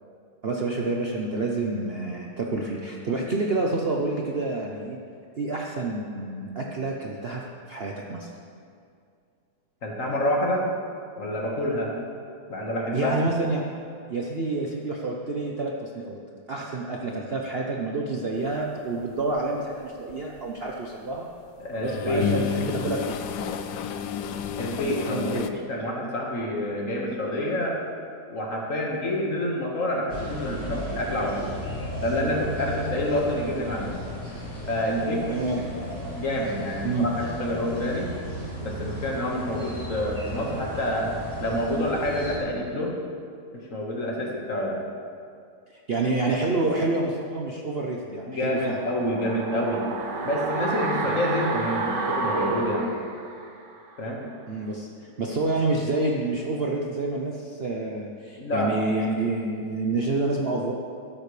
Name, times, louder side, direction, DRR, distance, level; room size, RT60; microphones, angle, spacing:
voice 1, 0.4-5.0 5.3-8.3 12.9-13.7 14.1-16.2 16.5-21.3 21.8-23.2 25.1-25.6 35.3-35.6 36.8-37.1 45.7-48.8 51.1-51.2 54.5-60.7, right 2 dB, 45° right, -1 dB, 0.8 m, -28 dB
voice 2, 9.8-10.7 11.2-11.9 12.5-13.3 21.6-22.3 24.6-27.8 28.3-31.5 32.0-33.9 34.7-35.3 36.1-38.1 38.6-41.1 41.4-43.0 43.5-44.8 48.3-49.8 50.2-52.9 54.0-54.2 58.4-58.7, left 1 dB, 50° left, -2 dB, 2.0 m, -27 dB
sound 1, 19.1-19.4 19.8-21.2 21.6-25.5, left 8 dB, 80° left, 1.2 m, -31 dB
sound 2, 30.1-42.4, equal, 10° left, 3.0 m, -35 dB
sound 3, 48.6-53.7 54.0-54.1, right 3 dB, 80° right, 1.7 m, -30 dB
13.5 x 12.5 x 3.3 m, 2.3 s
omnidirectional pair, 1.9 m